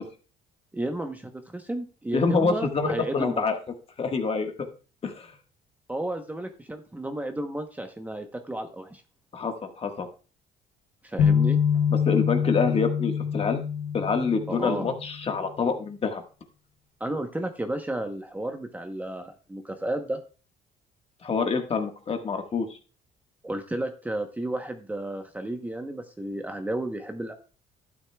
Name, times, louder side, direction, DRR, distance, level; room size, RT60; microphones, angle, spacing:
voice 1, 0.7-3.4 5.9-9.0 11.0-11.6 14.5-14.9 17.0-20.2 23.4-27.3, right 1 dB, 10° right, 5 dB, 0.9 m, -32 dB
voice 2, 2.1-3.6 4.0-4.5 5.0-5.3 9.3-10.1 11.9-13.6 13.9-16.2 21.2-22.7, left 4 dB, 35° left, 5 dB, 1.5 m, -26 dB
sound 1, 11.2-15.2, left 7 dB, 85° left, 3.1 m, -25 dB
11.5 x 9.1 x 2.3 m, 0.35 s
cardioid pair, 110°, 17 cm